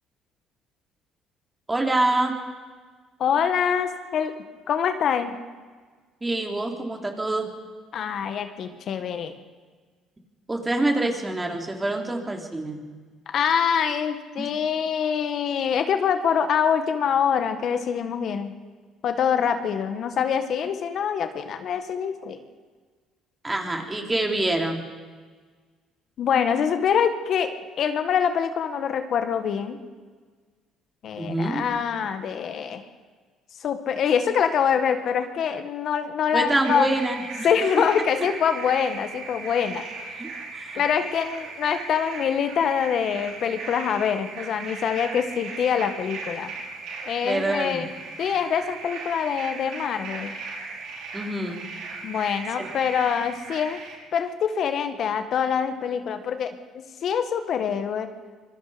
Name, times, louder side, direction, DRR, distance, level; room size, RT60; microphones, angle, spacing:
voice 1, 1.7-2.3 6.2-7.5 10.5-12.8 14.4-14.5 23.4-24.9 31.2-31.6 36.3-37.5 40.2-40.8 47.2-47.8 51.1-51.6 52.6-52.7, right 2 dB, 15° right, 2 dB, 3.8 m, -26 dB
voice 2, 3.2-4.3 4.7-5.4 7.9-9.3 13.3-18.5 19.0-22.4 26.2-27.5 27.8-29.8 31.0-32.8 33.6-36.9 37.4-40.2 40.8-46.5 47.1-47.9 48.2-50.3 52.0-53.8 54.1-58.1, left 7 dB, 60° left, 8 dB, 1.7 m, -25 dB
sound 1, 36.6-54.0, right 4 dB, 75° right, 5.1 m, -38 dB
25.0 x 21.5 x 5.2 m, 1.5 s
cardioid pair, 90°, 0 cm